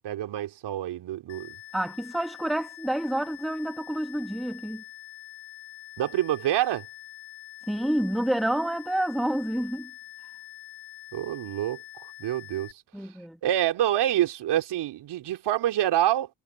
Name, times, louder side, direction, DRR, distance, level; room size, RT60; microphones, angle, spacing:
voice 1, 0.0-1.6 6.0-6.8 11.1-11.8 12.2-12.7 13.4-16.3, right 12 dB, 65° right, 3.3 m, -26 dB
sound 1, 1.3-12.7, left 14 dB, 80° left, 3.3 m, -45 dB
voice 2, 1.7-4.8 7.7-9.9 12.9-13.4, right 1 dB, ahead, 1.5 m, -28 dB
hypercardioid pair, 55°, 44 cm